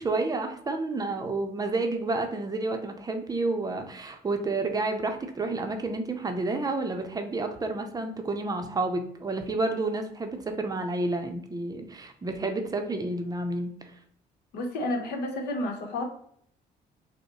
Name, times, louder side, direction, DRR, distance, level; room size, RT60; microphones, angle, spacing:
voice 1, 0.0-13.7, right 2 dB, 20° right, 5 dB, 0.6 m, -30 dB
voice 2, 14.5-16.0, left 1 dB, 75° left, 2 dB, 1.0 m, -30 dB
5.2 x 2.1 x 3.0 m, 0.66 s
cardioid pair, 110°, 17 cm